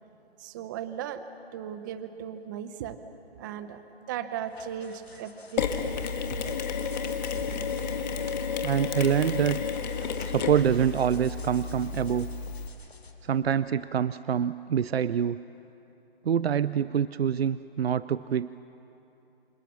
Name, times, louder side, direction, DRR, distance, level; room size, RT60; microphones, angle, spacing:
voice 1, 0.4-1.2 1.5-3.0 3.4-3.8 4.1-5.8 6.4-6.5, right 9 dB, 20° right, 11 dB, 0.7 m, -37 dB
sound 1, 4.5-13.1, left 4 dB, 80° left, 3.7 m, -51 dB
Mechanisms, 5.6-12.7, left 5 dB, 45° left, 1.8 m, -31 dB
voice 2, 8.6-9.6 10.2-12.3 13.2-15.4 16.2-18.7, right 8 dB, 75° right, 16 dB, 0.6 m, -26 dB
27.5 x 25.5 x 7.1 m, 2.9 s
hypercardioid pair, 145°, 31 cm